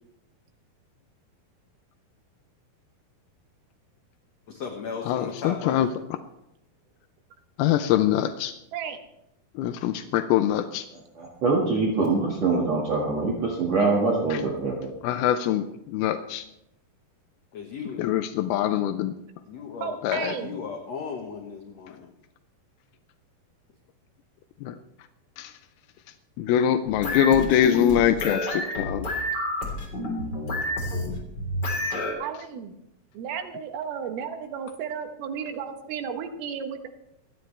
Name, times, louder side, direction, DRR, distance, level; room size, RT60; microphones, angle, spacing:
voice 1, 4.5-5.9 17.5-18.1 19.5-22.1, left 5 dB, 60° left, 1 dB, 2.0 m, -36 dB
voice 2, 5.1-5.9 7.6-8.5 9.6-10.9 14.3-14.4 15.0-16.4 18.0-19.1 20.0-20.4 24.6-24.8 25.4-25.5 26.4-29.1, left 10 dB, 85° left, 8 dB, 2.5 m, -23 dB
voice 3, 11.2-14.9, right 3 dB, 50° right, -3 dB, 2.7 m, -24 dB
voice 4, 19.8-20.6 32.2-32.7 33.1-36.9, right 7 dB, 80° right, 6 dB, 3.0 m, -33 dB
sound 1, 26.8-32.1, left 1 dB, 25° left, 3.9 m, -29 dB
27.5 x 9.2 x 3.3 m, 0.83 s
omnidirectional pair, 4.3 m